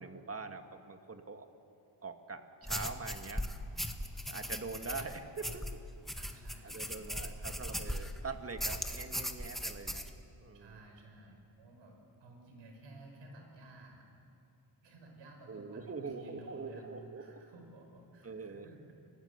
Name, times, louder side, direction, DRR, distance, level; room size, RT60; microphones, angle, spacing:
voice 1, 0.0-1.5 2.0-3.5 4.3-5.8 6.6-10.0 10.4-10.8 15.5-17.4 18.2-18.7, right 4 dB, 30° right, 7 dB, 2.0 m, -43 dB
sound 1, 2.6-8.2 8.6-10.1, equal, ahead, 1.7 m, -39 dB
voice 2, 6.1-7.6 10.5-11.9 12.2-14.1 14.8-16.9 17.2-18.9, right 1 dB, 90° right, 2 dB, 5.5 m, -55 dB
30.0 x 18.5 x 8.2 m, 2.7 s
cardioid pair, 85°, 43 cm